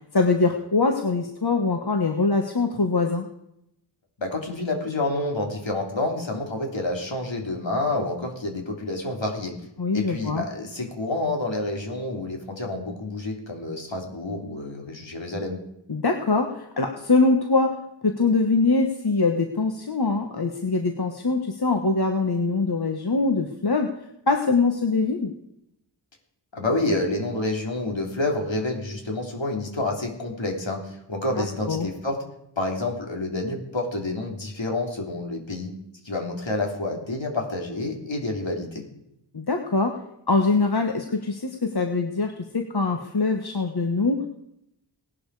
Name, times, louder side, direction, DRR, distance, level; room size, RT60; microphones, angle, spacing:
voice 1, 0.1-3.3 9.8-10.4 15.9-17.7 18.0-23.9 24.3-25.3 31.4-31.9 39.3-40.0 40.3-44.3, left 3 dB, 55° left, 4 dB, 1.4 m, -23 dB
voice 2, 4.2-9.5 9.9-15.6 26.5-32.2 32.6-35.7 36.0-38.8, left 2 dB, 75° left, 1 dB, 3.4 m, -28 dB
18.5 x 11.5 x 4.9 m, 0.80 s
wide cardioid pair, 60°, 46 cm